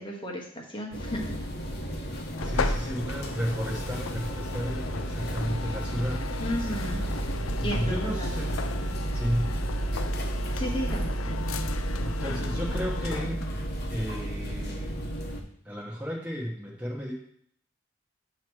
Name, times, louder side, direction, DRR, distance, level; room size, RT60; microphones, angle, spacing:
voice 1, 0.0-1.3 6.4-7.1 7.6-8.5 10.5-11.3, equal, 25° left, 0 dB, 1.1 m, -34 dB
sound 1, 0.9-15.4, right 1 dB, 50° left, 1.0 m, -32 dB
sound 2, 2.3-13.6, left 6 dB, 85° left, 0.5 m, -38 dB
voice 2, 2.4-6.2 7.6-8.6 9.1-9.5 11.8-13.4 13.9-15.0 15.6-17.1, equal, 5° right, -4 dB, 1.1 m, -33 dB
8.2 x 3.0 x 6.1 m, 0.66 s
head